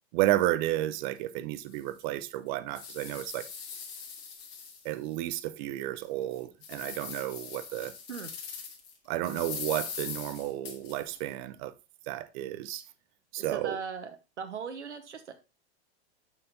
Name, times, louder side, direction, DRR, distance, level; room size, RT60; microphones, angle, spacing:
voice 1, 0.1-3.5 4.8-7.9 9.1-11.7 12.1-12.8 13.3-13.8, right 14 dB, 45° right, 0.8 m, -32 dB
sound 1, 1.1-1.2 1.7-1.8 2.3-5.2 5.6-5.7 6.2-8.9 9.2-11.2, left 6 dB, 60° left, 2.7 m, -41 dB
voice 2, 13.4-14.1 14.4-15.3, right 6 dB, 90° right, 1.1 m, -38 dB
6.6 x 6.0 x 4.0 m
hypercardioid pair, 115°, 34 cm